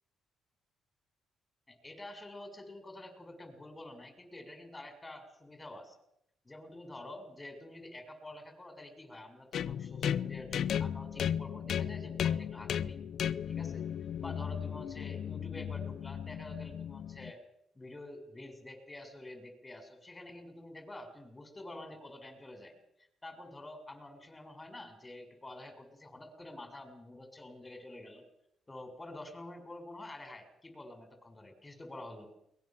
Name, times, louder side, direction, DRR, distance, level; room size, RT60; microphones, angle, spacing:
voice 1, 1.7-6.0 6.4-13.0 13.5-17.4 17.7-22.7 23.0-28.2 28.7-32.3, left 1 dB, 20° left, 7 dB, 6.6 m, -48 dB
sound 1, 9.5-17.3, left 9 dB, 65° left, 0.8 m, -35 dB
22.5 x 20.5 x 7.6 m, 0.79 s
cardioid pair, 90°, 0 cm